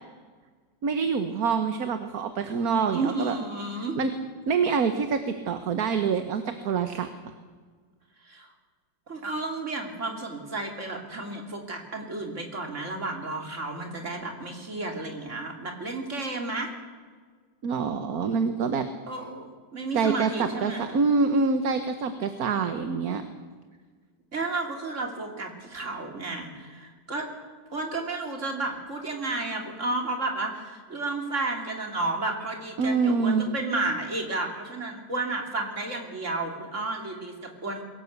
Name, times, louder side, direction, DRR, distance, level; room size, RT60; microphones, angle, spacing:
voice 1, 0.8-3.4 4.0-4.1 4.5-7.1 17.6-18.9 19.9-23.2 32.8-33.6, right 5 dB, 55° right, 8 dB, 1.6 m, -26 dB
voice 2, 2.9-4.0 8.2-8.5 9.1-16.7 19.1-20.9 24.3-27.3 27.7-37.8, right 2 dB, 40° right, 2 dB, 3.3 m, -32 dB
22.5 x 17.0 x 8.2 m, 1.6 s
omnidirectional pair, 1.9 m